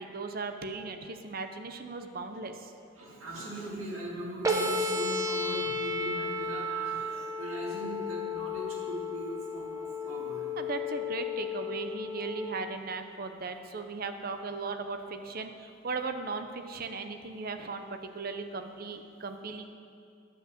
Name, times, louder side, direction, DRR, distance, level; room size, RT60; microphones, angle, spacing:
voice 1, 0.0-2.7 10.6-19.6, right 4 dB, 45° right, 7 dB, 0.6 m, -37 dB
voice 2, 3.0-10.5, right 1 dB, 85° right, -4 dB, 2.4 m, -40 dB
sound 1, 4.4-12.5, left 2 dB, 15° right, 0.8 m, -33 dB
9.9 x 5.5 x 7.6 m, 2.4 s
head